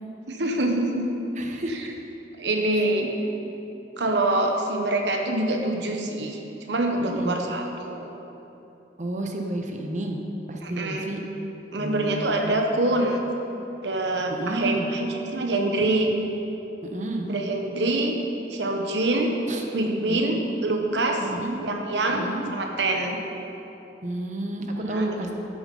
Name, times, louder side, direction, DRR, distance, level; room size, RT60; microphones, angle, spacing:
voice 1, 0.3-1.1 1.7-1.9 2.4-3.1 4.0-6.4 6.7-8.1 10.6-11.1 11.7-13.2 13.8-16.1 17.3-18.2 18.5-19.3 19.7-21.3 21.6-23.2 24.8-25.1, right 2 dB, 75° right, 2 dB, 1.1 m, -25 dB
voice 2, 1.4-1.8 7.0-7.4 9.0-10.2 10.5-11.2 11.7-12.5 14.4-14.9 16.9-17.3 19.5-19.6 20.0-20.4 21.2-21.6 22.1-22.5 24.0-25.4, right 1 dB, 40° right, 2 dB, 1.1 m, -31 dB
12.5 x 7.1 x 5.5 m, 3.0 s
head